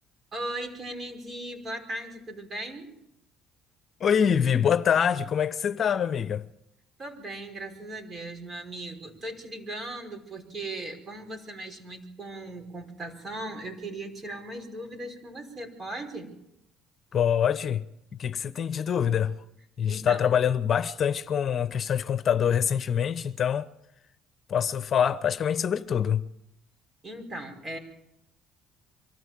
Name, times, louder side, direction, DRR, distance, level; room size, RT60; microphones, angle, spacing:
voice 1, 0.3-2.9 7.0-16.3 19.9-20.2 27.0-27.8, right 1 dB, 35° right, 5.3 m, -38 dB
voice 2, 4.0-6.4 17.1-17.8 18.2-19.3 19.8-23.7 24.5-26.2, left 8 dB, 50° left, 0.9 m, -25 dB
24.0 x 14.0 x 7.6 m
supercardioid pair, 70°, 0 cm